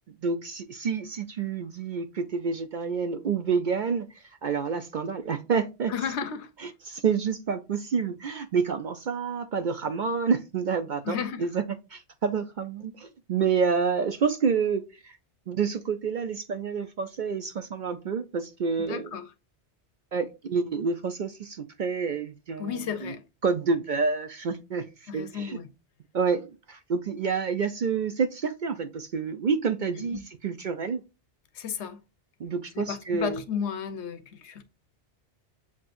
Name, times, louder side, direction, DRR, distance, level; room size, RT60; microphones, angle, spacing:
voice 1, 0.2-5.9 6.9-11.6 11.9-15.2 15.5-19.1 20.1-23.1 23.4-25.6 26.1-31.0 32.4-33.4, right 5 dB, 60° right, 0.5 m, -28 dB
voice 2, 5.9-6.5 11.0-11.5 18.8-19.3 22.6-23.2 25.1-25.7 30.0-30.2 31.5-32.0 32.7-34.6, left 7 dB, 80° left, 1.0 m, -33 dB
7.3 x 2.9 x 2.5 m
omnidirectional pair, 1.2 m